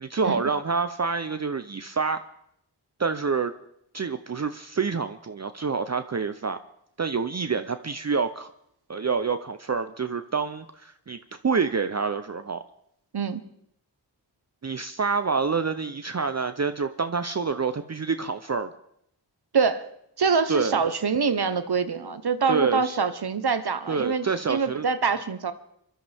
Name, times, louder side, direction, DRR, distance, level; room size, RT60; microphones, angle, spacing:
voice 1, 0.0-2.2 3.0-3.5 3.9-6.6 7.0-8.5 8.9-11.2 11.4-12.6 14.6-18.7 20.5-20.8 22.5-23.0 23.9-24.9, right 5 dB, 40° right, 9 dB, 0.6 m, -27 dB
voice 2, 19.5-19.9 20.2-25.5, right 5 dB, 65° right, 11 dB, 1.1 m, -25 dB
25.0 x 12.5 x 3.5 m, 0.73 s
wide cardioid pair, 70°, 41 cm